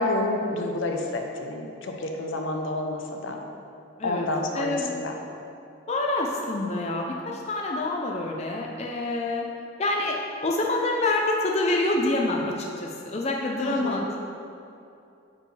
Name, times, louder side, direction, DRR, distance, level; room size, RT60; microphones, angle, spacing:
voice 1, 0.0-3.4 4.0-5.1 13.6-14.0, left 2 dB, 75° left, 2 dB, 0.7 m, -29 dB
voice 2, 4.5-5.0 5.9-9.4 9.8-10.2 10.4-14.2, left 2 dB, 35° left, 0 dB, 0.5 m, -27 dB
9.5 x 4.5 x 3.3 m, 2.6 s
head